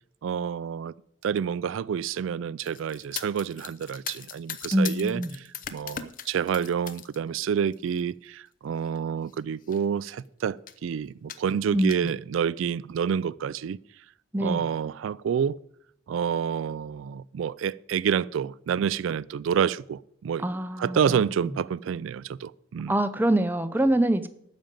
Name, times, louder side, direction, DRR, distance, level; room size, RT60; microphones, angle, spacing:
voice 1, 0.2-0.9 1.2-5.2 5.7-10.6 10.8-13.8 14.4-15.6 16.1-20.4 20.8-23.0, right 7 dB, 90° right, 0.3 m, -28 dB
sound 1, 2.6-7.2 7.6-8.0 8.8-9.0 9.3-9.4 9.6-10.2 10.7-10.8 11.3-12.1, left 9 dB, 45° left, 0.6 m, -40 dB
voice 2, 4.7-5.3 11.7-12.1 14.3-14.6 20.4-21.2 22.9-24.3, right 1 dB, 10° right, 0.5 m, -24 dB
13.0 x 5.2 x 9.0 m
head